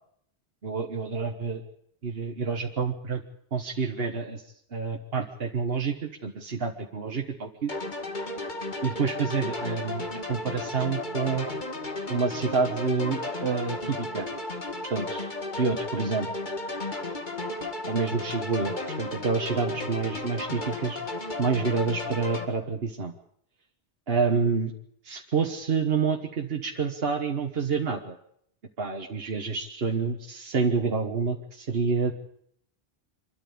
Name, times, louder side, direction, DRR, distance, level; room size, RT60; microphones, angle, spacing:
voice 1, 0.6-1.6 2.0-3.2 3.5-4.4 4.7-6.0 6.2-7.7 8.8-10.0 10.3-11.5 12.1-14.3 14.9-16.3 17.9-21.0 21.4-23.1 24.1-24.7 25.0-28.2 28.8-32.1, right 5 dB, 70° right, 2 dB, 1.6 m, -28 dB
sound 1, 7.7-22.4, left 2 dB, 50° left, 2.1 m, -34 dB
25.5 x 13.0 x 8.6 m, 0.70 s
omnidirectional pair, 1.0 m